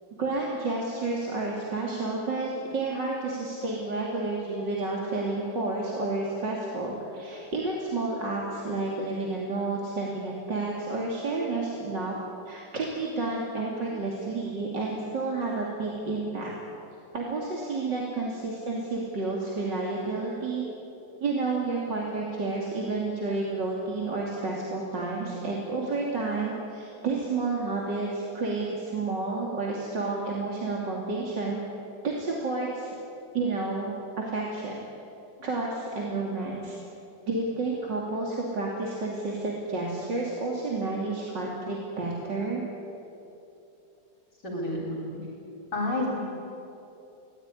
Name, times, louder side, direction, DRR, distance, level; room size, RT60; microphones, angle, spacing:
voice 1, 0.2-12.1 12.5-16.5 17.1-20.6 21.2-31.6 32.0-32.9 33.3-34.8 35.4-36.8 37.3-42.6, right 3 dB, 65° right, -3 dB, 3.5 m, -30 dB
voice 2, 21.8-22.1 27.8-27.9 44.4-45.2 45.7-46.2, left 1 dB, 60° left, -2 dB, 5.0 m, -31 dB
25.0 x 19.0 x 9.9 m, 2.8 s
omnidirectional pair, 2.1 m